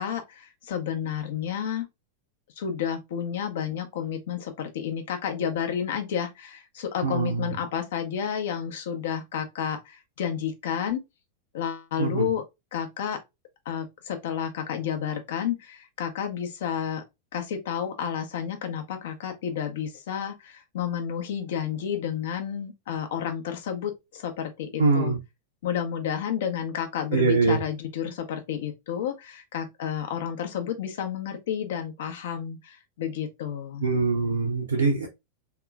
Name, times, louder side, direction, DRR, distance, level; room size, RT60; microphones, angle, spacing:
voice 1, 0.0-1.9 2.6-11.0 11.5-12.4 12.7-13.2 13.7-17.0 17.3-25.1 25.6-33.8, left 8 dB, 55° left, 0.7 m, -31 dB
voice 2, 7.0-7.5 12.0-12.3 24.8-25.2 27.1-27.6 33.8-35.1, right 4 dB, 70° right, 0.6 m, -23 dB
3.5 x 2.9 x 2.3 m
figure-of-eight pair, 90°, 0 cm